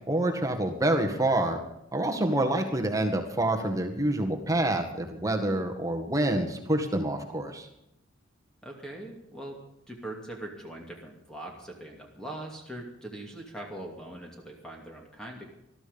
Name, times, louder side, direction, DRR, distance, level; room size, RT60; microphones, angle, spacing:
voice 1, 0.1-1.6 1.9-7.7, right 1 dB, 15° right, 3 dB, 1.8 m, -27 dB
voice 2, 8.6-9.6 9.9-15.4, right 1 dB, 5° left, 0 dB, 2.6 m, -41 dB
20.0 x 13.0 x 5.4 m, 0.84 s
head